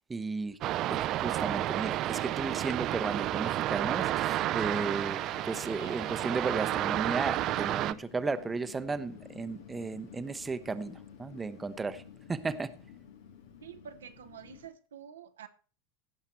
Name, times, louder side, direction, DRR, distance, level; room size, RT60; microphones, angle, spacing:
voice 1, 0.1-0.6 0.9-12.0 12.3-12.7, right 4 dB, 15° right, 0.7 m, -35 dB
sound 1, 0.6-7.9, right 14 dB, 45° right, 0.5 m, -31 dB
Wind, 4.4-14.7, left 8 dB, 75° left, 1.3 m, -52 dB
voice 2, 13.6-15.5, right 8 dB, 85° right, 0.8 m, -48 dB
16.0 x 5.7 x 4.5 m
hypercardioid pair, 90°, 0 cm